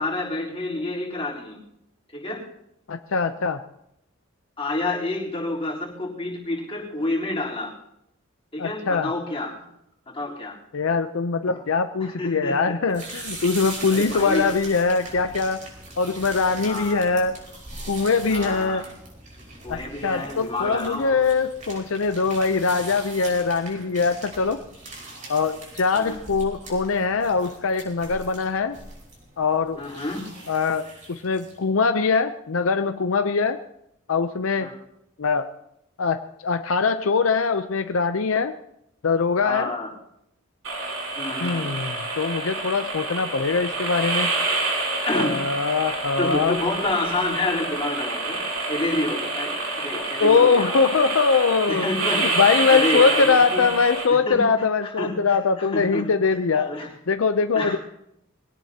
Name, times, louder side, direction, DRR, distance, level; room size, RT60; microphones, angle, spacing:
voice 1, 0.0-1.6 2.1-2.4 4.6-7.8 8.5-9.5 10.1-10.5 11.5-11.6 12.0-13.1 13.9-14.4 16.7-17.1 18.3-18.8 19.6-21.2 25.9-26.2 29.8-30.2 34.6-34.7 39.4-39.9 41.1-41.7 45.0-45.4 46.1-50.8 51.7-53.6 54.1-54.5 54.8-56.1 56.5-56.9 57.5-57.8, left 2 dB, 25° left, -4 dB, 3.7 m, -29 dB
voice 2, 2.9-3.6 8.6-9.1 10.7-15.6 16.0-17.4 17.9-18.8 19.7-24.6 25.3-28.8 29.4-29.8 30.5-33.6 34.1-34.7 35.2-35.5 36.0-38.5 39.0-39.7 41.4-44.3 45.1-46.6 50.2-51.9 52.2-56.7 57.1-57.8, left 4 dB, 80° left, 8 dB, 0.6 m, -22 dB
sound 1, 12.9-31.6, right 2 dB, 40° right, 5.3 m, -40 dB
sound 2, 40.6-54.0, right 3 dB, 85° right, 5.4 m, -27 dB
22.5 x 17.5 x 2.9 m, 0.78 s
head